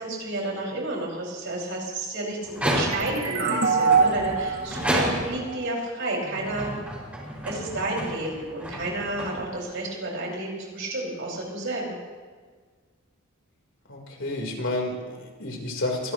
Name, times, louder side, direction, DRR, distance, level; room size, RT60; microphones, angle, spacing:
voice 1, 0.0-6.8 7.4-12.0, right 2 dB, 65° right, -2 dB, 5.7 m, -31 dB
sound 1, 2.5-3.3 3.9-5.6 6.2-9.8, equal, 5° right, 5.8 m, -30 dB
sound 2, 2.9-6.3, right 5 dB, 80° right, 2.2 m, -25 dB
voice 2, 13.9-16.1, left 2 dB, 65° left, 1 dB, 3.8 m, -30 dB
24.0 x 18.5 x 3.1 m, 1.5 s
head